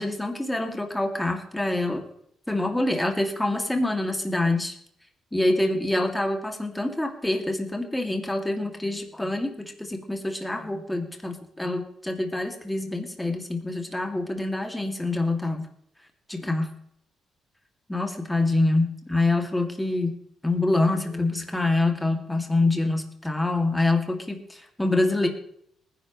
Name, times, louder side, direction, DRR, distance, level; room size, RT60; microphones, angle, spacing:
voice 1, 0.0-2.0 2.5-4.7 5.3-15.7 16.3-16.7 17.9-20.1 20.4-25.3, left 2 dB, 10° left, 4 dB, 2.3 m, -26 dB
19.5 x 10.5 x 3.1 m, 0.68 s
cardioid pair, 90°, 0 cm